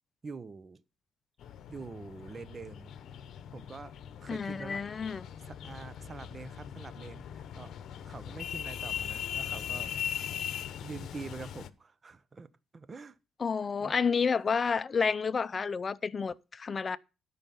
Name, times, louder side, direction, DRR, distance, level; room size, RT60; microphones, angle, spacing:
voice 1, 0.2-0.8 1.7-2.9 3.5-3.9 4.2-4.8 5.4-7.7 8.0-9.9 10.8-13.2 13.8-13.9, right 4 dB, 35° right, 0.8 m, -45 dB
sound 1, 1.4-11.7, left 9 dB, 70° left, 0.9 m, -40 dB
voice 2, 4.3-5.2 13.4-17.0, left 5 dB, 35° left, 0.6 m, -30 dB
12.5 x 5.7 x 5.5 m
cardioid pair, 90°, 0 cm